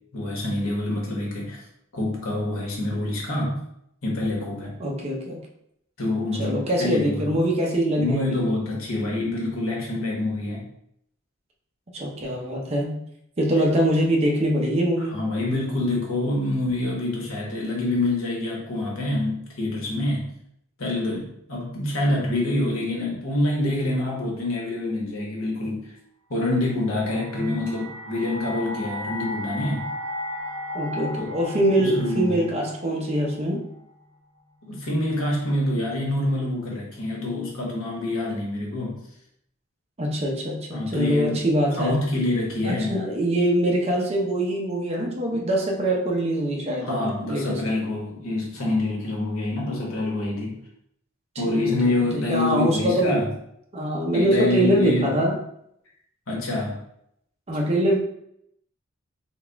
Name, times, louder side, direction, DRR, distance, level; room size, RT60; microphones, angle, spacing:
voice 1, 0.1-1.6 1.9-3.6 4.0-4.7 6.0-7.3 8.0-10.7 15.1-20.3 20.8-25.9 26.3-29.9 31.2-31.3 31.8-32.5 34.6-39.0 40.7-41.4 41.8-43.0 46.8-50.6 51.4-53.3 54.1-55.1 56.3-56.8, left 2 dB, 75° left, -3 dB, 1.2 m, -26 dB
voice 2, 4.8-5.4 6.4-8.4 11.9-13.0 13.4-15.2 27.4-27.6 30.7-33.7 40.0-42.1 42.6-47.6 51.5-53.2 53.7-55.4 57.5-58.0, right 1 dB, 30° right, -1 dB, 0.7 m, -23 dB
sound 1, 26.8-33.9, left 1 dB, 70° right, 0.6 m, -35 dB
3.9 x 2.4 x 3.4 m, 0.74 s
head